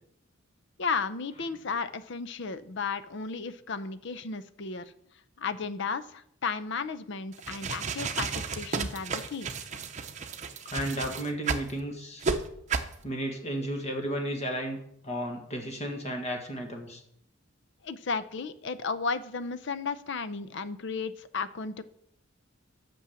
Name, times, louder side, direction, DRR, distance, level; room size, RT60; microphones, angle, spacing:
voice 1, 0.8-4.8 5.4-9.5 17.8-21.8, left 5 dB, 60° left, 13 dB, 0.6 m, -34 dB
sound 1, 7.3-11.7 12.2-12.4 12.7-12.9, right 5 dB, 35° right, 0.8 m, -32 dB
voice 2, 10.6-12.3 13.0-14.8 15.0-17.0, equal, 35° left, 3 dB, 1.6 m, -33 dB
8.5 x 6.2 x 6.9 m, 0.71 s
head